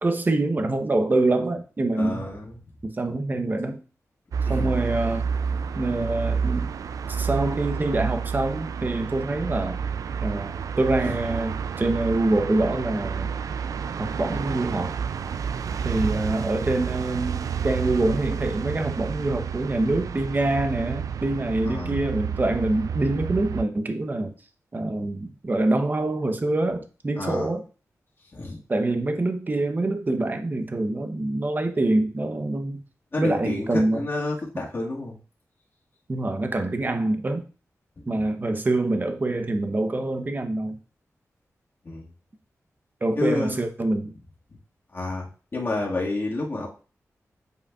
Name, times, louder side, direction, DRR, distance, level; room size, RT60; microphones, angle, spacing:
voice 1, 0.0-2.3 2.8-3.8 4.5-5.3 5.8-6.7 7.1-9.8 10.2-13.3 14.0-14.9 15.8-24.3 24.7-27.6 28.7-32.8 33.2-34.0 36.1-37.4 38.1-40.8 43.0-44.1, right 2 dB, 35° right, 7 dB, 0.8 m, -25 dB
voice 2, 2.0-2.6 4.5-4.7 11.0-11.1 21.7-22.0 27.2-27.5 28.3-28.6 33.1-35.2 38.1-38.3 41.8-42.1 43.2-43.7 44.9-45.3 45.5-46.7, left 2 dB, 45° left, -4 dB, 1.9 m, -29 dB
sound 1, 4.3-23.6, right 6 dB, 80° right, 0.3 m, -30 dB
8.1 x 4.8 x 2.4 m, 0.36 s
wide cardioid pair, 75°, 6 cm